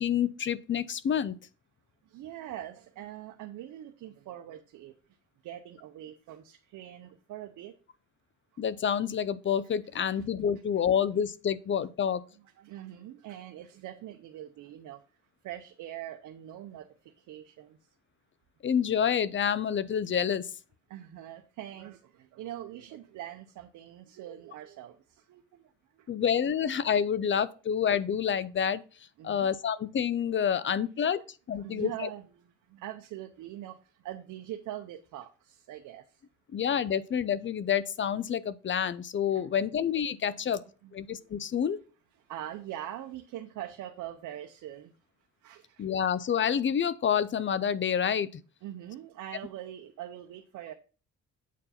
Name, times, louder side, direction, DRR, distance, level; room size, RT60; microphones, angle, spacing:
voice 1, 0.0-1.4 8.6-12.2 18.6-20.5 26.1-28.8 29.2-31.2 31.5-32.1 36.5-40.6 40.9-41.8 45.8-48.3, left 8 dB, 40° left, 0.6 m, -28 dB
voice 2, 2.1-4.9 5.4-7.7 10.1-10.3 12.3-15.0 15.4-17.8 20.9-26.1 29.2-29.5 31.0-31.1 31.6-36.2 39.3-39.6 40.3-41.2 42.3-44.9 45.4-46.0 48.6-50.7, right 12 dB, 85° right, 0.7 m, -43 dB
8.2 x 4.5 x 4.2 m
cardioid pair, 90°, 30 cm